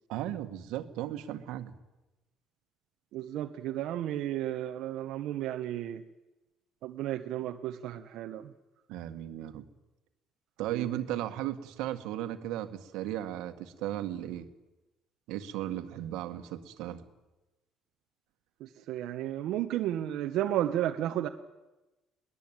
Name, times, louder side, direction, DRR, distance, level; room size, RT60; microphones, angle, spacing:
voice 1, 0.1-1.7 8.9-9.7 10.6-14.5 15.3-17.0, right 12 dB, 85° right, 1.8 m, -36 dB
voice 2, 3.1-6.0 6.8-8.4 10.6-10.9 18.9-21.3, right 12 dB, 60° right, 1.1 m, -33 dB
22.0 x 19.5 x 9.0 m
cardioid pair, 175°, 0 cm